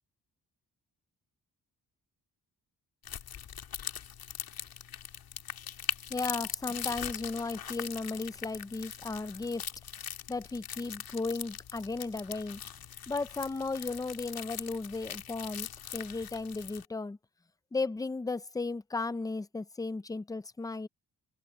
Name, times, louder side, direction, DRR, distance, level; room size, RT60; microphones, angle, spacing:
sound 1, 3.0-16.9, left 9 dB, 75° left, 2.2 m, -41 dB
voice 1, 6.1-9.6 10.3-12.6 13.1-17.2 17.7-20.9, left 3 dB, 10° left, 0.4 m, -35 dB
open air
wide cardioid pair, 180°, 36 cm